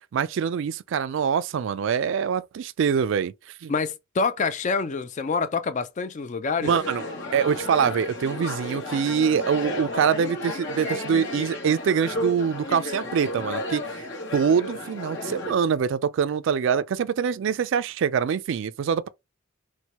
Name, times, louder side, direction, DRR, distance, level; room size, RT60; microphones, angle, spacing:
voice 1, 0.1-3.3 3.6-3.7 6.6-7.0 7.3-14.1 14.3-19.1, right 7 dB, 60° right, 0.3 m, -24 dB
voice 2, 3.7-6.7, left 4 dB, 35° left, 0.4 m, -26 dB
sound 1, 6.6-15.5, left 1 dB, 60° left, 1.1 m, -33 dB
4.4 x 2.1 x 2.9 m
head